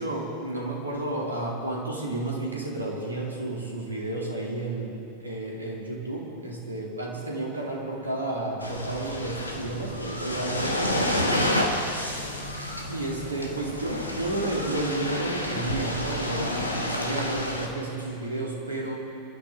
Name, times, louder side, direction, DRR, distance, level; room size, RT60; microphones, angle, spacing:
voice 1, 0.0-11.4 12.9-19.0, right 2 dB, 80° right, -2 dB, 2.9 m, -32 dB
sound 1, 8.6-17.7, left 1 dB, 85° left, 1.5 m, -29 dB
26.5 x 12.0 x 3.7 m, 2.8 s
figure-of-eight pair, 90°, 0 cm